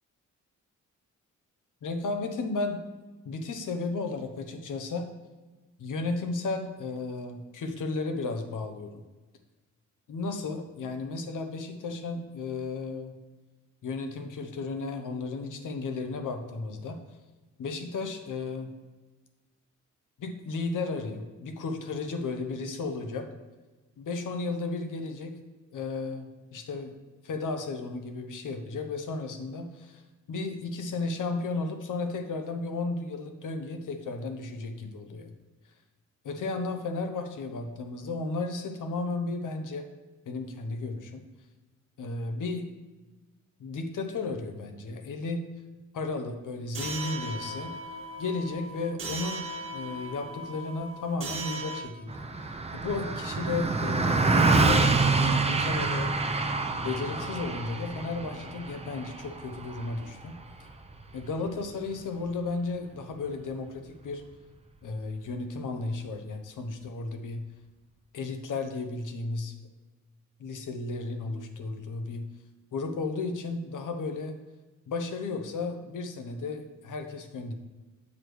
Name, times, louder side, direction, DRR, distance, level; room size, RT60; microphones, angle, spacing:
voice 1, 1.8-2.8 3.2-5.1 5.8-9.0 10.1-13.1 13.8-17.0 17.6-18.7 20.2-23.3 24.0-25.4 25.7-26.9 27.2-30.0 30.3-35.3 36.2-39.9 40.3-41.2 42.0-42.7 43.6-45.5 45.9-47.8 48.2-52.2 52.7-54.3 54.6-56.1 56.8-60.4 61.1-64.2 64.8-67.5 68.1-69.5 70.4-72.3 72.7-74.3 74.9-77.5, left 3 dB, 80° left, 6 dB, 0.9 m, -34 dB
sound 1, 46.7-51.8, right 2 dB, 45° right, 1.4 m, -38 dB
Car passing by, 52.1-61.7, right 3 dB, 20° right, 0.6 m, -27 dB
7.3 x 3.2 x 6.2 m, 1.2 s
cardioid pair, 95°, 31 cm